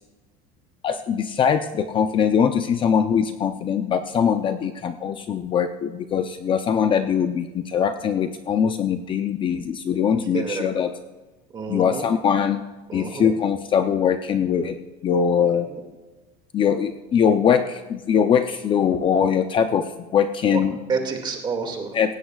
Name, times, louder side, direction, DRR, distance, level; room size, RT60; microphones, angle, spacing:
voice 1, 0.8-10.9 11.7-12.6 12.9-14.8 15.0-15.7 16.5-19.8 20.1-20.7 21.9-22.1, left 7 dB, 30° left, 8 dB, 0.6 m, -22 dB
voice 2, 10.1-10.7 11.5-12.1 12.9-13.3 15.7-15.9 20.4-20.6 20.9-21.9, right 5 dB, 25° right, 3 dB, 2.2 m, -29 dB
18.0 x 16.5 x 2.4 m, 1.2 s
cardioid pair, 155°, 18 cm